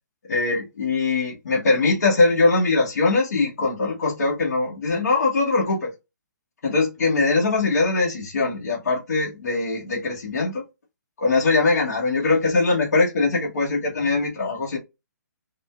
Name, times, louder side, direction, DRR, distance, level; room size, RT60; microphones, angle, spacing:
voice 1, 0.3-5.9 6.6-10.6 11.2-14.8, left 3 dB, 55° left, 1.2 m, -21 dB
3.6 x 2.2 x 2.3 m
hypercardioid pair, 175°, 10 cm